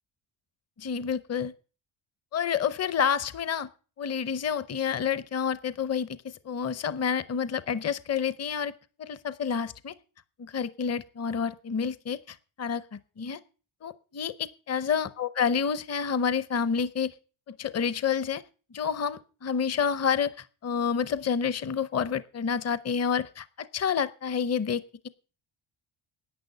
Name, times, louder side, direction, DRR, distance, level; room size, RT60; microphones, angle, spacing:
voice 1, 0.8-1.5 2.3-3.7 4.0-6.1 6.4-8.7 9.0-9.9 10.4-13.4 13.8-17.1 17.5-18.4 18.7-20.3 20.6-25.1, left 7 dB, 30° left, 16 dB, 0.7 m, -29 dB
10.5 x 9.6 x 6.7 m, 0.36 s
wide cardioid pair, 150°, 50 cm